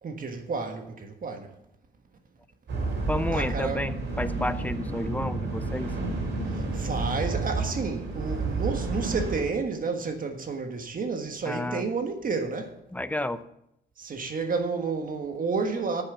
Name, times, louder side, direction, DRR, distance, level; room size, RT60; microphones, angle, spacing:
voice 1, 0.0-1.5 3.3-3.8 6.5-12.8 14.0-16.0, right 4 dB, 45° right, 1.4 m, -31 dB
sound 1, 2.7-9.4, right 3 dB, 65° right, 3.9 m, -30 dB
voice 2, 3.1-5.9 11.4-11.8 12.9-13.4, left 1 dB, 10° left, 0.7 m, -31 dB
8.9 x 7.2 x 7.1 m
cardioid pair, 90°, 20 cm